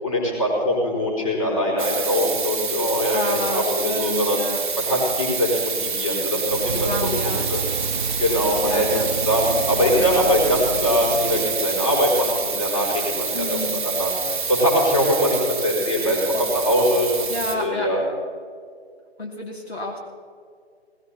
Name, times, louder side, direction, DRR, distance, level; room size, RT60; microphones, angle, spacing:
voice 1, 0.0-4.4 4.8-7.6 7.9-13.6 13.8-18.0, equal, 30° left, -2 dB, 5.1 m, -22 dB
sound 1, 1.8-17.6, right 5 dB, 5° right, 1.2 m, -27 dB
voice 2, 3.1-4.6 6.6-7.5 8.6-9.0 13.3-13.8 16.0-16.1 17.3-17.9 19.2-20.0, left 1 dB, 75° left, 0 dB, 2.9 m, -30 dB
sound 2, 6.5-12.0, right 5 dB, 45° right, 0.5 m, -31 dB
19.5 x 15.5 x 4.3 m, 2.2 s
figure-of-eight pair, 150°, 32 cm